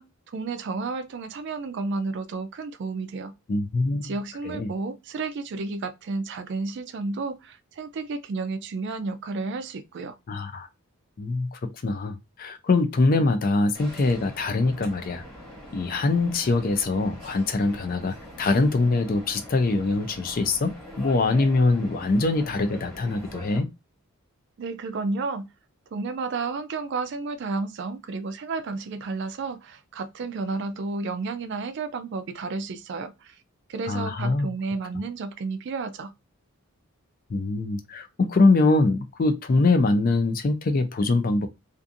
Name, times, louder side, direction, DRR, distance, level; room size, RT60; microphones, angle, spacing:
voice 1, 0.0-3.3 4.0-10.2 24.6-25.5 25.9-33.4 33.7-36.1, right 3 dB, 55° right, 0.3 m, -32 dB
voice 2, 3.5-4.1 4.4-4.7 10.3-10.7 11.2-15.2 15.7-23.7 33.9-34.5 37.3-41.5, left 3 dB, 40° left, 0.4 m, -23 dB
sound 1, 13.7-23.6, equal, ahead, 1.1 m, -43 dB
2.5 x 2.4 x 2.5 m
head